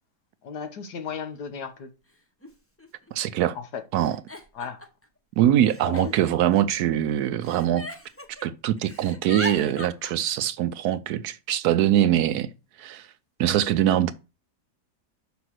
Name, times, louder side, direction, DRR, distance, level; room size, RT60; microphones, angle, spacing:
voice 1, 0.4-1.9 3.6-3.7 4.5-4.8 5.8-6.1, left 6 dB, 75° left, 1.7 m, -35 dB
Giggle, 1.3-1.4 2.4-2.5 2.8-3.3 3.9-5.0 5.7-7.0 7.4-8.5 8.8-10.1, left 1 dB, 15° left, 0.6 m, -38 dB
voice 2, 3.1-3.6 3.9-4.2 5.4-7.8 8.4-12.5 12.8-13.1 13.4-14.1, right 11 dB, 75° right, 1.0 m, -23 dB
5.9 x 5.2 x 6.3 m
omnidirectional pair, 1.8 m